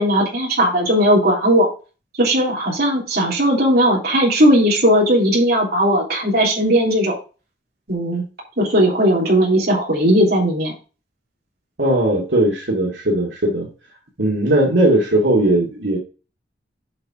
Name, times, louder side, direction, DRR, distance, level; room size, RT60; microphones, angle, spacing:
voice 1, 0.0-1.7 2.2-7.1 7.9-8.2 8.6-10.7, equal, 55° right, -3 dB, 3.4 m, -17 dB
voice 2, 11.8-13.7 14.2-16.0, right 1 dB, 80° right, -3 dB, 2.4 m, -18 dB
7.8 x 5.8 x 3.7 m, 0.34 s
head